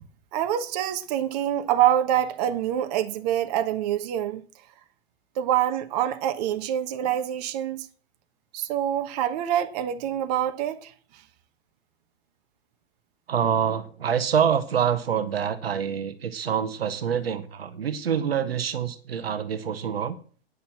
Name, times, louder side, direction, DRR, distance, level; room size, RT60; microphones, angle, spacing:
voice 1, 0.3-4.4 5.4-7.9 8.5-10.9, right 11 dB, 40° right, 1.2 m, -25 dB
voice 2, 13.3-20.2, right 8 dB, 65° right, 1.2 m, -26 dB
9.6 x 6.8 x 7.5 m
figure-of-eight pair, 115°, 32 cm